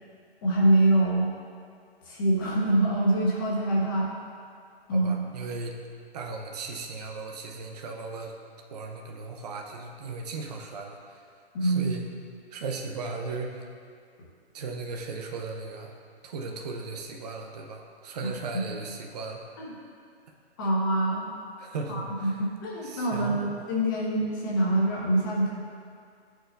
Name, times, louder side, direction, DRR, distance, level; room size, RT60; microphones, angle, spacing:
voice 1, 0.4-1.3 2.0-4.1 4.9-5.1 11.5-12.0 19.6-19.7 20.6-21.2 21.9-25.5, right 1 dB, 20° left, -4 dB, 0.7 m, -25 dB
voice 2, 4.9-5.8 6.1-8.3 8.7-11.3 11.6-12.0 12.5-13.7 14.5-15.9 16.2-19.4 21.6-22.4 22.8-23.5, right 4 dB, 40° right, 2 dB, 0.5 m, -37 dB
10.0 x 4.5 x 2.3 m, 2.2 s
hypercardioid pair, 150°, 32 cm